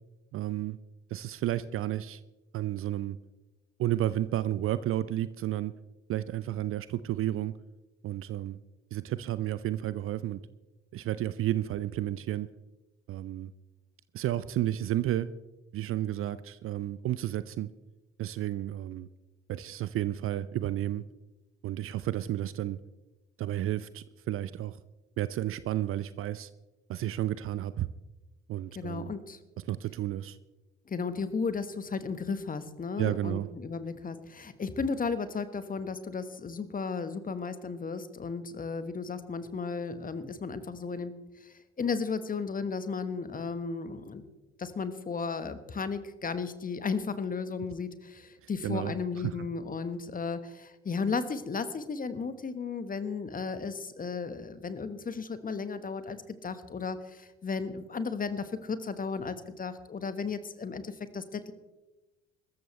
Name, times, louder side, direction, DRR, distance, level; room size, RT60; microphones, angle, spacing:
voice 1, 0.3-0.8 1.1-2.2 2.5-3.2 3.8-5.7 6.1-7.5 8.0-8.6 8.9-10.4 10.9-12.5 13.1-13.5 14.1-15.3 15.7-17.7 18.2-19.1 19.5-21.0 21.6-22.8 23.4-24.8 25.2-26.5 26.9-27.9 28.5-29.1 29.6-30.4 33.0-33.5 48.4-49.3, right 13 dB, 40° right, 16 dB, 0.6 m, -32 dB
voice 2, 28.7-29.4 30.9-41.1 41.4-44.2 44.6-61.5, left 5 dB, 25° left, 12 dB, 1.5 m, -34 dB
24.5 x 14.0 x 3.3 m, 1.1 s
figure-of-eight pair, 55°, 34 cm